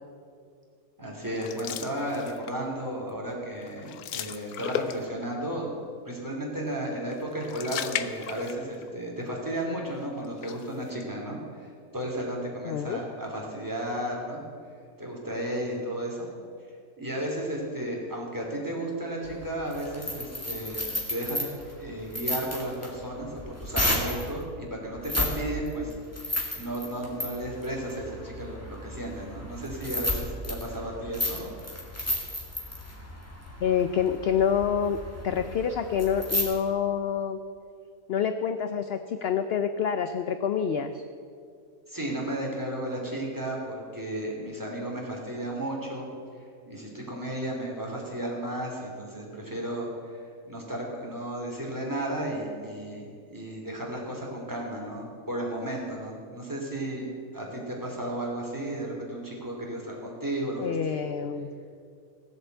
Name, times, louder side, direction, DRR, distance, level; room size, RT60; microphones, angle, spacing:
voice 1, 1.0-5.7 6.0-14.4 15.0-16.3 17.0-21.5 21.8-25.9 26.2-31.5 41.9-46.1 46.7-60.8, right 1 dB, 15° right, -2 dB, 2.9 m, -34 dB
sound 1, 1.3-2.7 3.1-3.3 3.6-5.3 7.1-8.9 9.2-9.3 10.2-11.0, left 10 dB, 90° left, 1.2 m, -36 dB
voice 2, 12.6-13.0 33.6-35.0 35.2-37.4 38.1-41.0 60.6-61.5, left 7 dB, 60° left, 9 dB, 0.7 m, -27 dB
sound 2, 19.3-24.3 25.0-25.4 25.7-36.4, left 1 dB, 10° left, 2.2 m, -33 dB
16.5 x 7.9 x 7.9 m, 2.3 s
omnidirectional pair, 1.5 m